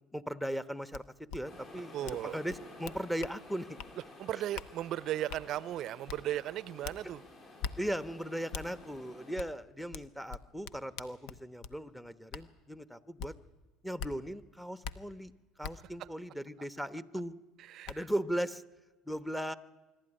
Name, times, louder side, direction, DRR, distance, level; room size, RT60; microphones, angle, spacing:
voice 1, 0.1-1.0 1.3-3.7 7.8-13.3 13.8-15.3 15.6-17.3 17.9-18.6 19.0-19.5, equal, 5° left, 1.1 m, -38 dB
sound 1, 0.9-1.0 1.3-1.4 2.0-2.2 2.5-3.4 3.8-3.9 4.5-4.7 5.3-5.4 6.1-6.2 6.8-7.0 7.6-7.7 8.5-8.7 9.4-9.5 9.9-11.8 12.3-12.4 13.2-13.3 14.0-14.1 14.8-14.9 15.6-15.7 17.2-17.3 17.8-18.0, left 6 dB, 70° left, 0.9 m, -41 dB
sound 2, 1.4-9.4, left 2 dB, 45° left, 7.2 m, -53 dB
voice 2, 1.9-2.4 4.2-7.2 16.0-16.1 17.6-18.1, right 13 dB, 55° right, 0.6 m, -36 dB
24.0 x 12.0 x 10.0 m
hypercardioid pair, 75°, 0 cm